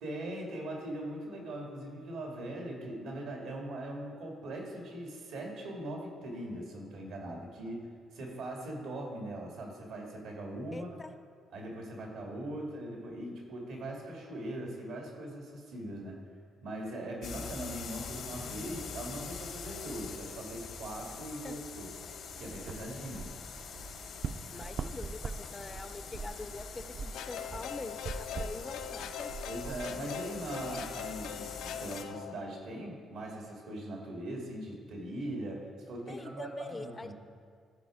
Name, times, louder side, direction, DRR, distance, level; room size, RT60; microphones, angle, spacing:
voice 1, 0.0-10.9 11.5-16.2 16.6-21.9 22.4-23.3 29.4-37.1, right 1 dB, 85° right, 0 dB, 2.0 m, -40 dB
voice 2, 10.7-11.1 21.4-21.6 24.5-29.3 36.1-37.1, left 3 dB, 25° left, 10 dB, 0.4 m, -44 dB
sound 1, 17.2-32.0, left 6 dB, 70° left, 0.9 m, -44 dB
sound 2, 22.3-30.8, right 5 dB, 55° right, 0.4 m, -43 dB
sound 3, 27.1-32.3, left 8 dB, 90° left, 0.4 m, -42 dB
14.0 x 5.0 x 4.9 m, 2.1 s
cardioid pair, 90°, 0 cm